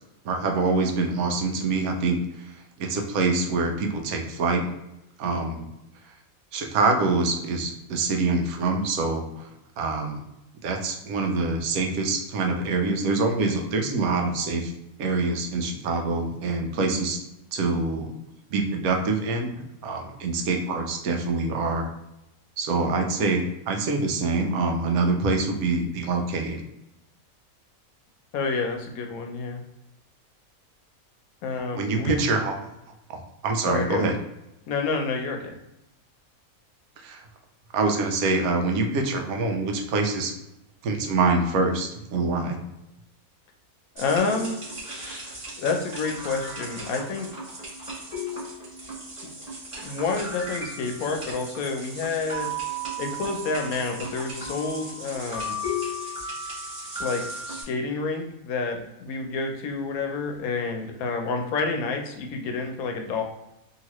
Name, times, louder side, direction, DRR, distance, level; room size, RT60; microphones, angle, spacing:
voice 1, 0.2-2.2 2.8-4.7 5.2-5.7 6.5-9.5 9.8-10.2 10.6-14.7 15.0-17.2 17.5-18.1 18.5-19.5 19.8-21.9 22.6-26.6 31.7-32.7 33.1-34.2 37.0-37.2 37.7-40.3 40.8-42.6, right 3 dB, 90° right, 3 dB, 1.1 m, -25 dB
voice 2, 28.3-29.6 31.4-32.1 33.7-34.2 34.7-35.5 44.0-44.6 45.6-47.3 49.8-52.5 53.0-55.6 57.0-63.2, left 4 dB, 80° left, 3 dB, 1.0 m, -29 dB
sound 1, 44.0-57.6, equal, 30° right, 1.3 m, -35 dB
2.8 x 2.7 x 2.9 m, 0.89 s
omnidirectional pair, 1.5 m